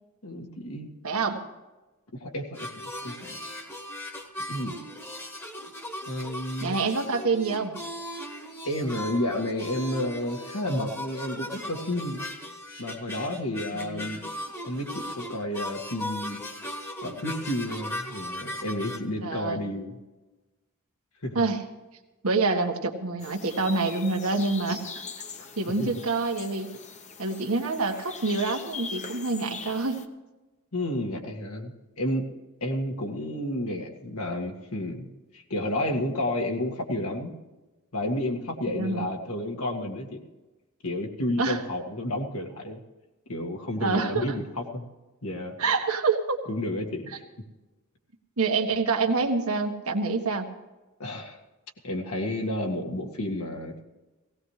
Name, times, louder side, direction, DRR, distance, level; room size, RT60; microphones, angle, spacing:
voice 1, 0.2-0.9 2.2-3.4 4.5-4.8 6.1-6.7 8.6-12.2 12.8-14.3 14.7-16.4 17.0-20.0 21.2-21.4 25.8-25.9 30.7-32.2 32.6-35.1 35.3-37.3 37.9-40.2 40.8-42.8 43.3-44.9 45.2-45.6 46.5-47.2 51.0-51.4 51.8-53.8, left 1 dB, 80° left, 1 dB, 2.0 m, -31 dB
voice 2, 1.0-1.4 6.6-7.8 13.7-14.2 19.2-19.6 21.3-21.6 22.2-25.0 25.6-26.7 27.2-30.0 38.7-39.1 41.4-41.6 43.8-44.2 45.6-46.4 48.4-50.4, right 3 dB, 75° right, 4 dB, 1.5 m, -27 dB
sound 1, 2.5-19.0, equal, 10° left, 1.3 m, -38 dB
sound 2, 23.2-30.1, left 5 dB, 30° left, 0.8 m, -42 dB
17.5 x 17.5 x 3.3 m, 1.1 s
head